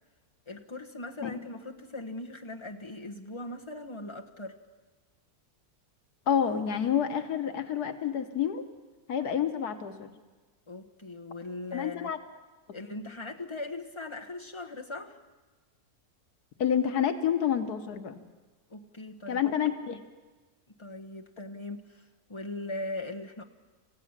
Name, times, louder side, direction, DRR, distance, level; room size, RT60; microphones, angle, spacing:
voice 1, 0.5-4.6 10.7-12.1 12.7-15.2 18.7-19.4 19.9-20.0 20.8-23.4, left 2 dB, 20° left, 3 dB, 1.3 m, -40 dB
voice 2, 6.3-8.6 9.1-10.1 11.7-12.2 16.6-18.2 19.3-20.0, left 8 dB, 90° left, 7 dB, 1.7 m, -28 dB
28.0 x 15.5 x 7.4 m, 1.3 s
omnidirectional pair, 1.6 m